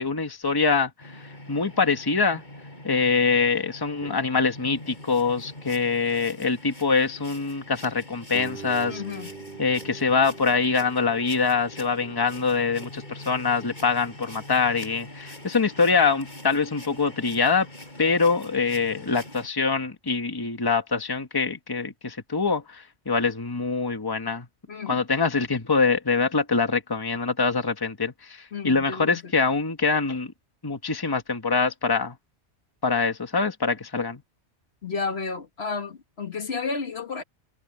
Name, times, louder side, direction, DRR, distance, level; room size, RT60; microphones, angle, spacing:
voice 1, 0.0-2.4 2.8-9.0 9.6-17.7 18.0-24.5 24.9-30.3 30.6-32.2 32.8-34.2, left 4 dB, 20° left, 1.3 m, -24 dB
sound 1, 1.0-19.5, left 1 dB, 40° left, 6.5 m, -44 dB
Guitar, 8.3-13.7, right 4 dB, 60° right, 2.8 m, -44 dB
voice 2, 8.9-9.3 24.7-25.0 28.5-29.2 34.8-37.2, left 4 dB, 65° left, 1.7 m, -32 dB
omnidirectional pair, 1.2 m